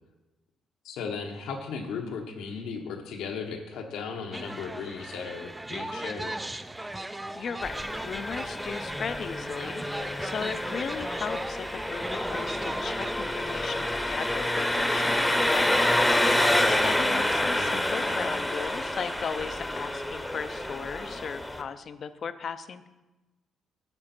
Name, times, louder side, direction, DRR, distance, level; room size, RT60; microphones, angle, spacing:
voice 1, 0.8-6.4 16.8-17.0, left 5 dB, 85° left, 3 dB, 1.1 m, -36 dB
sound 1, 4.3-13.1, right 1 dB, 10° right, 0.4 m, -38 dB
voice 2, 7.4-16.4 16.7-22.9, left 6 dB, 50° left, 12 dB, 0.5 m, -36 dB
Engine, 7.6-21.6, left 1 dB, 10° left, 0.8 m, -28 dB
9.7 x 6.9 x 4.4 m, 1.1 s
cardioid pair, 90°, 0 cm